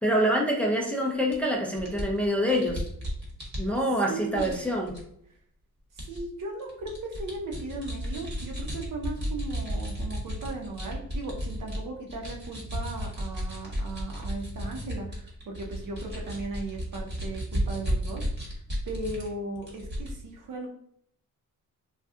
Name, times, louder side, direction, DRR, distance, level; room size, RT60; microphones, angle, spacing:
voice 1, 0.0-2.8 3.6-4.9, equal, 5° left, -2 dB, 0.6 m, -26 dB
sound 1, 1.3-1.4 1.8-4.0 4.3-5.0 6.0-6.2 6.6-11.8 12.1-19.3 19.5-20.1, equal, 30° right, 1.1 m, -33 dB
voice 2, 4.1-4.5 6.0-18.3 18.9-20.7, right 2 dB, 70° right, 1 dB, 0.8 m, -37 dB
2.5 x 2.3 x 3.6 m, 0.69 s
cardioid pair, 110°, 33 cm